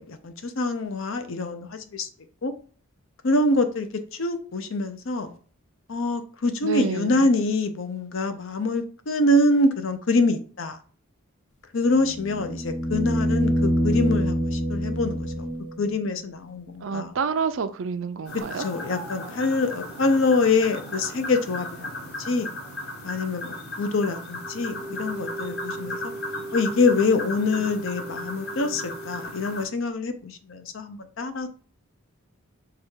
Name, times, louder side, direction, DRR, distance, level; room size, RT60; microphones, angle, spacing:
voice 1, 0.0-2.1 2.4-2.5 3.2-5.3 5.9-10.8 11.7-15.5 15.8-17.1 18.6-22.5 23.0-26.1 26.5-31.5, left 2 dB, 65° left, 0.6 m, -25 dB
voice 2, 6.6-7.3 16.8-18.7, right 6 dB, 65° right, 0.4 m, -28 dB
sound 1, 11.9-16.0 18.4-18.5, equal, 85° left, 1.5 m, -25 dB
sound 2, 18.2-29.6, left 1 dB, 50° left, 1.5 m, -36 dB
sound 3, 24.3-29.3, right 2 dB, 5° left, 0.5 m, -38 dB
4.9 x 2.4 x 4.4 m
head